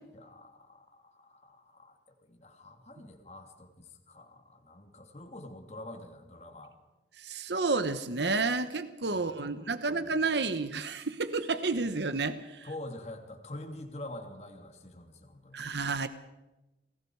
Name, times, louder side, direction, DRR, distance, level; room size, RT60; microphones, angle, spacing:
voice 1, 0.1-6.7 9.1-10.3 12.6-15.7, left 1 dB, 35° left, 4 dB, 2.8 m, -46 dB
voice 2, 7.2-12.7 15.5-16.1, right 3 dB, 75° right, 11 dB, 1.1 m, -30 dB
28.5 x 20.0 x 4.7 m, 1.0 s
head